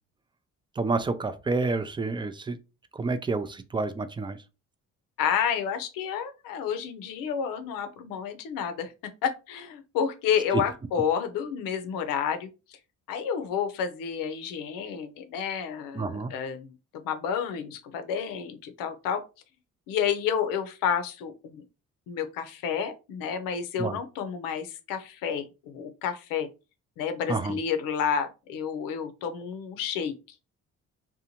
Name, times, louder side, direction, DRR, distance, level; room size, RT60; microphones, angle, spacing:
voice 1, 0.8-2.6 2.9-4.4 16.0-16.3 23.8-24.0 27.3-27.6, right 3 dB, 15° right, 0.3 m, -29 dB
voice 2, 5.2-8.9 9.2-12.5 13.1-16.7 17.0-19.2 19.9-21.6 22.1-26.5 27.0-30.1, left 7 dB, 90° left, 0.6 m, -30 dB
2.6 x 2.2 x 2.8 m
supercardioid pair, 70°, 33 cm